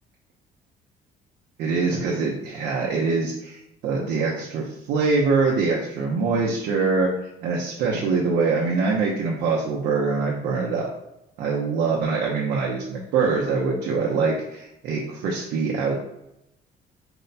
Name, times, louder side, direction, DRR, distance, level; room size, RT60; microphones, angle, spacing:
voice 1, 1.6-7.1 7.4-10.9 11.4-16.0, right 4 dB, 80° right, -3 dB, 0.8 m, -24 dB
4.6 x 2.2 x 4.0 m, 0.84 s
cardioid pair, 110°, 17 cm